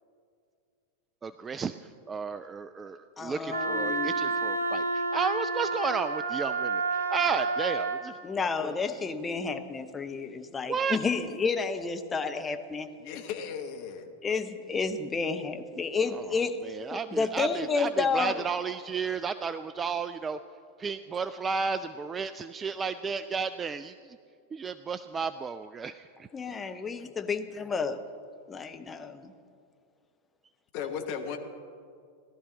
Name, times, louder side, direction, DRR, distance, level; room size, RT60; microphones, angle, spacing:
voice 1, 1.2-1.8 2.1-8.2 8.6-8.7 10.7-11.0 16.1-16.2 16.6-20.4 20.8-24.2 24.5-26.1, right 5 dB, 20° right, 11 dB, 0.3 m, -33 dB
voice 2, 3.2-4.1 8.2-12.9 14.2-16.6 16.9-18.4 26.3-27.9 28.5-29.3, left 5 dB, 15° left, 8 dB, 0.8 m, -31 dB
Wind instrument woodwind instrument, 3.5-8.0, right 3 dB, 75° right, 0.9 m, -30 dB
voice 3, 13.0-14.1 30.7-31.4, left 7 dB, 45° left, 5 dB, 1.2 m, -36 dB
17.5 x 12.0 x 4.0 m, 2.3 s
figure-of-eight pair, 90°, 0 cm